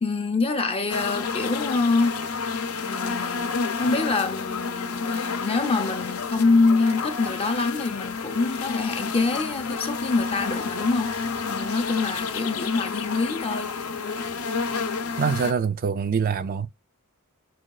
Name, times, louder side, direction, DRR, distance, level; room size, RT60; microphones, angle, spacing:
voice 1, 0.0-2.2 2.8-13.8, left 3 dB, 25° left, 0.5 m, -25 dB
sound 1, 0.9-15.5, left 5 dB, 75° left, 0.6 m, -30 dB
voice 2, 15.2-16.7, right 6 dB, 40° right, 0.3 m, -24 dB
6.3 x 2.3 x 2.2 m
head